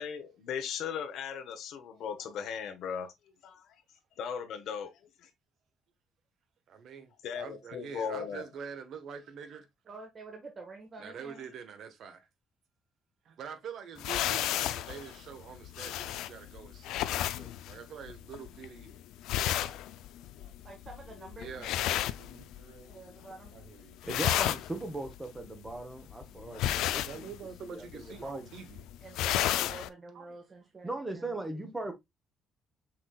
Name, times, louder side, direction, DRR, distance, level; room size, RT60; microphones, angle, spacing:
voice 1, 0.0-3.7 4.2-4.9 5.2-5.3 7.2-8.4, left 7 dB, 75° left, 0.9 m, -37 dB
voice 2, 6.7-9.7 11.0-12.3 13.2-19.0 21.4-21.7 27.0-28.8 30.1-30.3, right 6 dB, 65° right, 1.1 m, -45 dB
voice 3, 9.9-11.5 19.4-19.8 20.6-21.9 22.9-23.5 26.3-26.7 29.0-31.3, right 3 dB, 30° right, 1.2 m, -48 dB
sound 1, 14.0-22.9 23.2-23.7 23.9-29.9, left 13 dB, 90° left, 0.3 m, -33 dB
voice 4, 22.2-22.9 23.5-24.0 31.5-31.6, right 5 dB, 90° right, 1.2 m, -56 dB
voice 5, 24.0-27.3 27.6-28.5 30.8-31.9, right 2 dB, 15° right, 0.9 m, -39 dB
5.9 x 3.9 x 2.2 m
cardioid pair, 120°, 0 cm